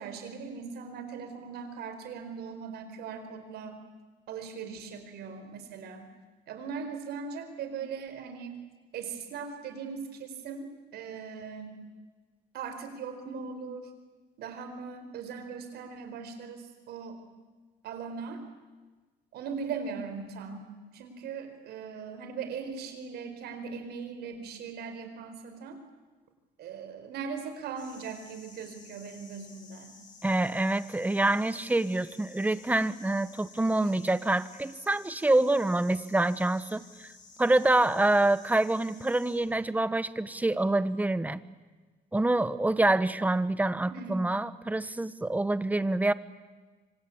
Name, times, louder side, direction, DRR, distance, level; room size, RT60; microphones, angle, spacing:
voice 1, 0.0-3.8 4.3-6.1 6.5-8.7 8.9-10.7 10.9-11.8 12.5-13.9 14.4-17.2 17.8-18.4 19.3-25.8 26.6-30.0 43.9-44.3, right 5 dB, 70° right, 8 dB, 4.7 m, -39 dB
sound 1, 27.8-39.4, left 4 dB, 50° left, 7.9 m, -54 dB
voice 2, 30.2-37.1 37.4-41.4 42.1-46.1, right 2 dB, 10° right, 15 dB, 1.1 m, -26 dB
26.0 x 25.5 x 8.7 m, 1.3 s
cardioid pair, 110°, 17 cm